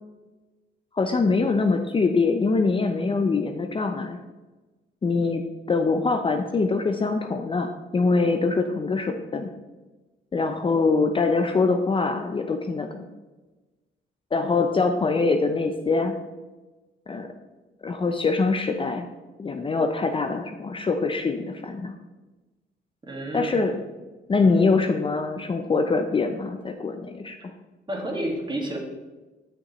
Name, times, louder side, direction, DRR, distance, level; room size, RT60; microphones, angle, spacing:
voice 1, 0.9-4.2 5.0-5.4 5.7-9.5 10.3-13.1 14.3-16.2 17.1-17.3 17.8-19.1 19.4-21.9 23.3-23.8 24.3-27.5, left 4 dB, 25° left, 5 dB, 0.6 m, -23 dB
voice 2, 23.0-23.7 27.9-28.8, right 1 dB, 25° right, 0 dB, 1.9 m, -30 dB
8.3 x 6.5 x 3.1 m, 1.2 s
cardioid pair, 90°, 20 cm